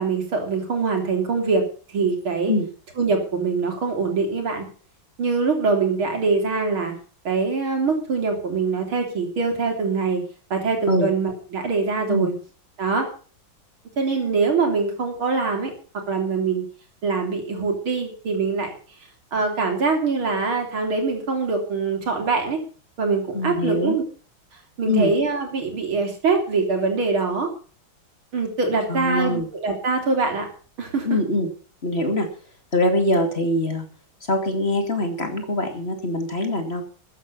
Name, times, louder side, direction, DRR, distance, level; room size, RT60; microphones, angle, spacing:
voice 1, 0.0-1.6 1.9-2.5 3.0-4.7 5.2-6.9 7.2-10.2 10.5-12.3 12.8-13.1 14.0-15.7 16.1-16.6 17.0-18.7 19.3-22.6 23.0-24.0 24.8-27.5 28.3-30.5 30.8-31.1, right 4 dB, 90° right, 3 dB, 4.4 m, -23 dB
voice 2, 23.3-24.0 24.8-25.1 28.9-29.5 31.0-31.5 31.8-32.3 32.7-33.9 34.3-36.8, left 1 dB, 30° left, 5 dB, 2.6 m, -23 dB
14.5 x 9.2 x 7.0 m, 0.40 s
omnidirectional pair, 2.2 m